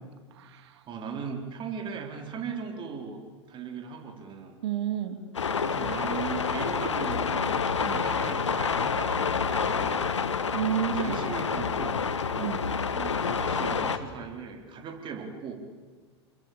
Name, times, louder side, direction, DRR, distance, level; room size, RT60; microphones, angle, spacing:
voice 1, 0.3-0.8 4.6-5.2 7.8-8.0 10.5-11.2 12.4-12.6, right 11 dB, 65° right, 8 dB, 3.0 m, -31 dB
voice 2, 0.9-3.2 3.5-4.6 5.6-7.5 7.8-10.2 10.7-12.0 12.9-15.5, right 6 dB, 35° right, 3 dB, 4.6 m, -38 dB
sound 1, 5.3-14.0, left 5 dB, 85° left, 1.6 m, -28 dB
28.5 x 22.0 x 8.8 m, 1.5 s
hypercardioid pair, 95°, 15 cm